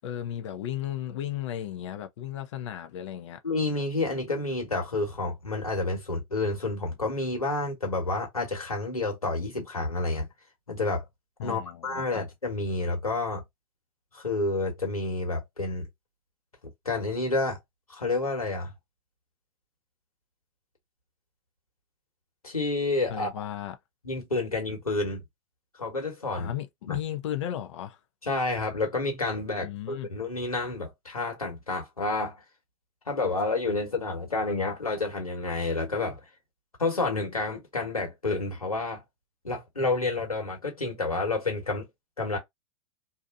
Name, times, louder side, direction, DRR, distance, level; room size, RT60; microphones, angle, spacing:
voice 1, 0.0-3.4 11.4-12.2 23.1-23.8 26.3-28.0 29.5-30.1, left 11 dB, 55° left, 0.7 m, -35 dB
voice 2, 3.4-10.3 10.7-11.0 11.4-13.4 14.1-15.9 16.8-17.6 17.9-18.7 22.4-23.3 24.0-25.2 25.8-26.5 26.9-27.0 28.2-32.4 33.0-36.2 36.8-39.0 39.4-41.9 42.2-42.4, left 2 dB, 90° left, 1.4 m, -29 dB
2.8 x 2.4 x 2.4 m
figure-of-eight pair, 100°, 18 cm